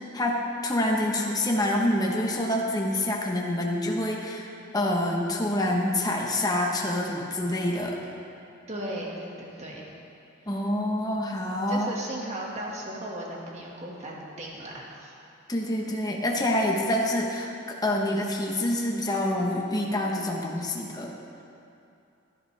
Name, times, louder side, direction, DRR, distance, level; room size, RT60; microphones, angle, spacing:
voice 1, 0.1-7.9 10.5-11.9 15.5-17.5 17.8-21.1, left 1 dB, 20° left, -1 dB, 1.0 m, -27 dB
voice 2, 8.7-9.9 10.4-10.5 11.7-15.1, right 1 dB, 35° right, -3 dB, 1.8 m, -37 dB
15.5 x 11.0 x 3.4 m, 2.7 s
head